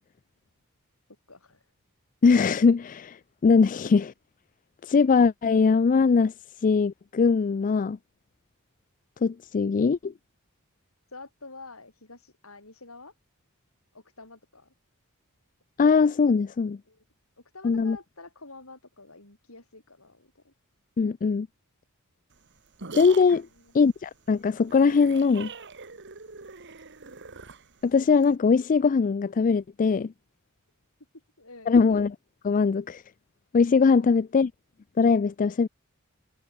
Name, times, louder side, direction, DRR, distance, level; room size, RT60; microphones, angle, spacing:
voice 1, 1.3-1.6 11.1-13.1 13.9-14.7 16.9-17.0 17.5-20.5 23.3-23.7 31.4-31.8 33.9-34.2, left 3 dB, 70° left, 7.5 m, -48 dB
voice 2, 2.2-4.1 4.8-6.3 6.6-8.0 9.2-10.1 15.8-16.8 17.6-18.0 21.0-21.5 22.9-23.5 23.7-25.5 27.8-30.1 31.7-32.2 32.4-33.0 33.5-34.5 35.0-35.7, left 5 dB, 40° left, 0.4 m, -21 dB
sound 1, 22.3-28.4, right 4 dB, 55° right, 2.4 m, -43 dB
head